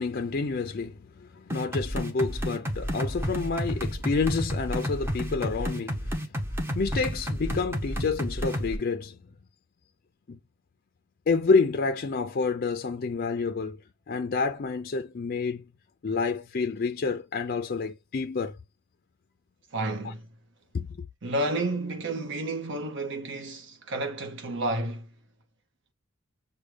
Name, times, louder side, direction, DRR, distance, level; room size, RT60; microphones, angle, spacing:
voice 1, 0.0-6.3 6.7-9.2 10.3-10.4 11.3-13.8 14.1-15.6 16.0-18.5 20.0-20.1 20.7-21.1, left 4 dB, 45° left, 0.4 m, -28 dB
sound 1, 1.5-8.8, equal, 10° right, 0.7 m, -31 dB
voice 2, 19.7-20.2 21.2-25.1, right 2 dB, 60° right, 0.9 m, -31 dB
6.3 x 2.2 x 3.3 m
head